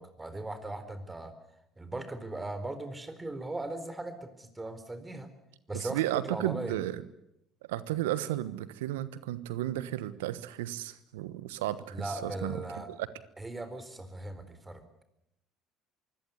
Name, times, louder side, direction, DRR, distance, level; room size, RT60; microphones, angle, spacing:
voice 1, 0.0-1.3 1.8-5.3 5.7-6.7 11.9-12.9 13.4-15.0, right 2 dB, 15° right, 10 dB, 4.2 m, -38 dB
voice 2, 5.7-7.0 7.7-12.6 12.9-13.0, right 14 dB, 80° right, 16 dB, 1.2 m, -33 dB
23.5 x 17.0 x 9.6 m, 0.84 s
hypercardioid pair, 60°, 0 cm